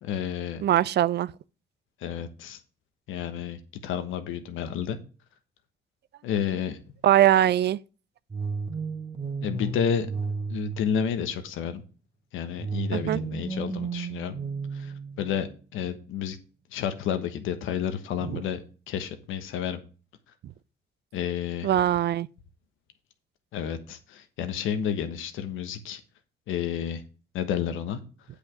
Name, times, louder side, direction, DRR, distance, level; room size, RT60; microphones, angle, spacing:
voice 1, 0.0-0.6 2.0-2.6 3.1-5.0 6.2-6.8 9.4-10.1 10.5-11.8 12.3-14.3 14.7-16.4 16.7-18.6 18.9-19.8 21.1-21.7 23.5-26.0 26.5-27.0 27.3-28.0, left 8 dB, 90° left, 1.3 m, -30 dB
voice 2, 0.6-1.3 7.0-7.8 12.9-13.2 18.2-18.4 21.6-22.3, right 12 dB, 60° right, 0.4 m, -21 dB
sound 1, 8.3-11.4 12.6-15.5, right 4 dB, 25° right, 1.4 m, -33 dB
8.6 x 5.1 x 6.1 m
cardioid pair, 90°, 20 cm